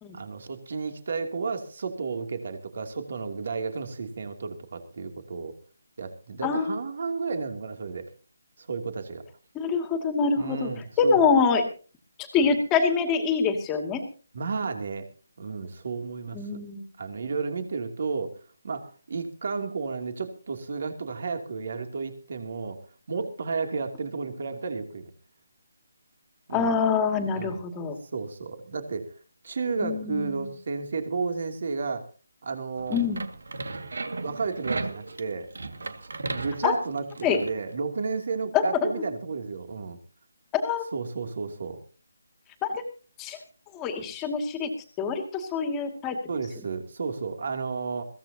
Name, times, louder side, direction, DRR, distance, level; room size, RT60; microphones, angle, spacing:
voice 1, 0.1-5.5 6.0-8.1 8.6-9.2 10.4-11.3 14.3-15.1 15.4-16.6 17.0-18.3 18.6-22.8 23.1-25.0 26.5-26.7 27.3-27.6 28.1-29.1 29.4-32.0 32.4-33.0 34.2-35.5 36.3-40.0 40.9-41.8 46.3-48.0, right 4 dB, 50° right, 6 dB, 2.9 m, -32 dB
voice 2, 9.5-10.7 11.0-11.6 12.3-14.0 16.3-16.8 26.5-28.0 29.8-30.4 32.9-33.2 36.6-36.7 37.2-37.4 38.5-38.9 40.5-40.9 42.6-42.8 43.2-43.4 43.7-44.7 45.0-46.2, left 5 dB, 10° left, 6 dB, 2.3 m, -25 dB
sound 1, 32.8-37.6, right 3 dB, 75° right, 2.1 m, -35 dB
22.0 x 17.0 x 2.9 m, 0.38 s
hypercardioid pair, 170°, 0 cm